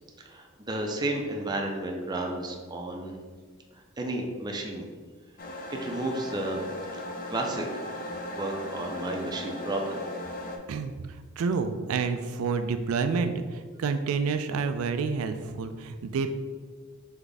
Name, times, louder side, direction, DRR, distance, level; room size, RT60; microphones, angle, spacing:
voice 1, 0.2-3.2 3.7-4.8 5.7-6.7 7.3-7.7 8.3-10.0, right 2 dB, 20° right, 1 dB, 0.5 m, -32 dB
sound 1, 5.4-10.6, left 1 dB, 40° left, 0.5 m, -37 dB
voice 2, 10.7-16.3, right 5 dB, 85° right, 8 dB, 0.3 m, -29 dB
3.6 x 3.4 x 3.9 m, 1.5 s
head